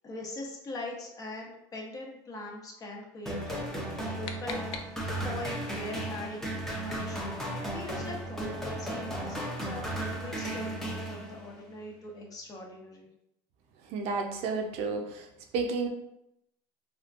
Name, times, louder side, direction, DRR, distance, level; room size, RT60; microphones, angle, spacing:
voice 1, 0.0-4.8 5.2-13.1, left 2 dB, 30° left, 0 dB, 0.8 m, -42 dB
sound 1, 3.3-11.6, right 1 dB, 5° left, 0.7 m, -35 dB
sound 2, 3.8-5.4, left 5 dB, 55° left, 0.4 m, -44 dB
voice 2, 13.9-15.3 15.5-15.9, right 4 dB, 65° right, 3 dB, 0.6 m, -31 dB
3.5 x 2.4 x 2.5 m, 0.83 s
supercardioid pair, 110°, 11 cm